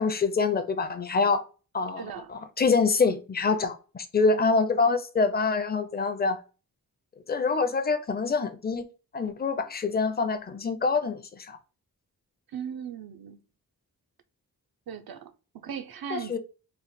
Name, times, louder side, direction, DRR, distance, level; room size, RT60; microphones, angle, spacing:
voice 1, 0.0-1.4 1.7-6.4 7.3-8.9 9.1-11.6 16.1-16.4, left 4 dB, 25° left, 0.5 m, -26 dB
voice 2, 2.0-2.3 12.5-13.4 14.9-16.4, right 8 dB, 70° right, 0.5 m, -38 dB
3.2 x 2.1 x 4.1 m
wide cardioid pair, 105°, 37 cm